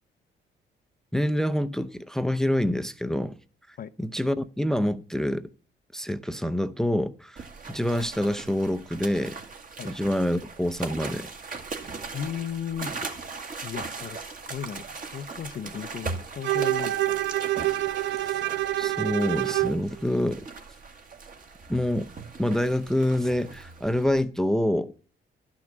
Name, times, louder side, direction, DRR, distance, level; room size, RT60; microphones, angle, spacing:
voice 1, 1.1-3.3 3.7-5.5 5.9-9.4 9.8-11.3 18.3-18.4 18.8-20.5 21.7-22.1 22.4-24.9, left 1 dB, ahead, 0.5 m, -26 dB
sound 1, 7.4-24.2, right 4 dB, 45° right, 1.7 m, -39 dB
voice 2, 12.1-12.9 13.6-14.8 15.1-17.2, left 8 dB, 45° left, 0.6 m, -35 dB
Bowed string instrument, 16.4-19.8, right 15 dB, 65° right, 0.4 m, -26 dB
11.5 x 6.1 x 7.3 m
cardioid pair, 90°, 20 cm